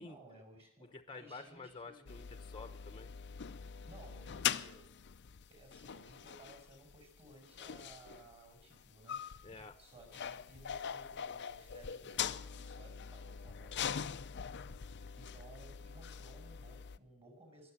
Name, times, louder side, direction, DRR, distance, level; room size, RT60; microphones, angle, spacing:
voice 1, 0.0-2.1 3.9-4.9 5.5-9.4 9.8-14.2 15.2-17.7, right 2 dB, 30° right, 3 dB, 5.2 m, -58 dB
voice 2, 0.8-3.1 9.4-9.8, left 3 dB, 25° left, 8 dB, 1.0 m, -50 dB
sound 1, 2.1-17.0, left 8 dB, 55° left, 0.5 m, -42 dB
22.5 x 7.6 x 7.5 m, 0.70 s
head